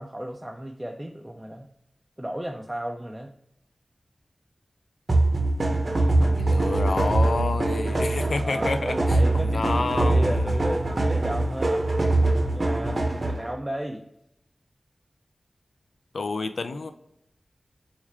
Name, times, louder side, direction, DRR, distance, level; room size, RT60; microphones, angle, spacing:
voice 1, 0.0-1.7 2.2-3.3 8.2-11.9 12.5-14.0, equal, 15° right, 2 dB, 0.4 m, -34 dB
sound 1, 5.1-13.5, right 2 dB, 55° right, 0.7 m, -23 dB
voice 2, 6.2-9.0 9.3-10.6 16.1-16.9, left 3 dB, 85° left, 9 dB, 0.3 m, -29 dB
4.1 x 2.4 x 3.3 m, 0.78 s
cardioid pair, 45°, 0 cm